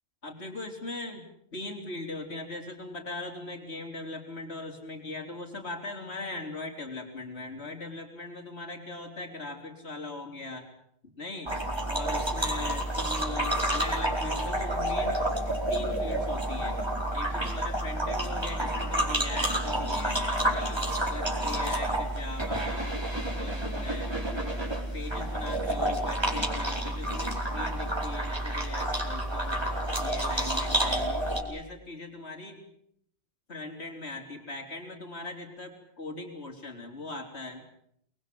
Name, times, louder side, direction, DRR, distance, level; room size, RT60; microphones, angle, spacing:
voice 1, 0.2-10.7 11.0-11.5 11.9-15.2 15.7-16.8 17.1-20.2 20.5-23.0 23.3-24.1 24.9-29.6 30.0-32.6 33.5-37.7, left 2 dB, 70° left, 3 dB, 4.4 m, -40 dB
sound 1, 11.5-31.4, right 1 dB, 25° right, 4.7 m, -29 dB
28.0 x 21.5 x 7.8 m, 0.71 s
omnidirectional pair, 1.1 m